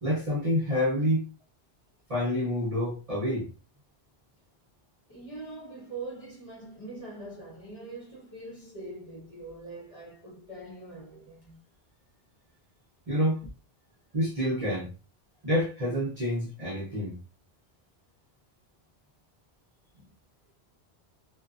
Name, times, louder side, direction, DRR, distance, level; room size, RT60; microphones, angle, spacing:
voice 1, 0.0-1.3 2.1-3.5 13.1-13.4 14.1-14.9 15.4-17.2, equal, 40° right, 0.7 m, -28 dB
voice 2, 5.1-11.6, right 2 dB, 35° left, 0.9 m, -43 dB
2.6 x 2.4 x 2.3 m
omnidirectional pair, 1.1 m